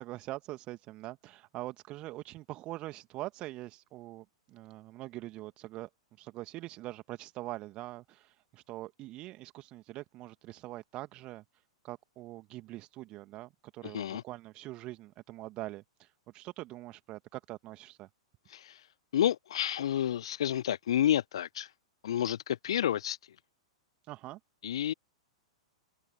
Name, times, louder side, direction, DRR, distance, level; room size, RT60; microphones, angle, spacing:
voice 1, 0.0-5.9 6.2-18.1 24.0-24.4, right 17 dB, 35° right, 1.4 m, -43 dB
voice 2, 13.8-14.2 18.5-18.8 19.1-21.7 22.0-23.2 24.6-24.9, left 10 dB, 60° left, 0.4 m, -30 dB
open air
figure-of-eight pair, 100°, 3 cm